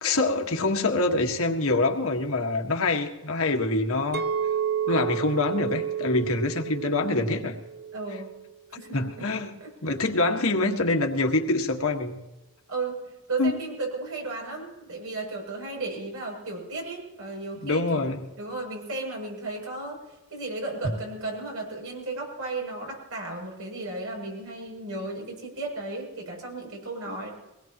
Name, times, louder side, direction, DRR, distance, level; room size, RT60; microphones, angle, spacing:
voice 1, 0.0-4.2 4.9-7.6 8.9-9.5 9.8-12.2 13.4-13.6 17.6-18.3, left 2 dB, 75° left, 3 dB, 1.7 m, -25 dB
Chink clink, 4.1-8.5 8.9-9.3, right 8 dB, 45° right, 0.9 m, -31 dB
voice 2, 7.9-8.4 8.7-9.3 9.6-9.7 12.7-20.0 20.3-27.3, right 2 dB, 90° right, -1 dB, 7.6 m, -34 dB
23.5 x 19.5 x 3.0 m, 1.0 s
head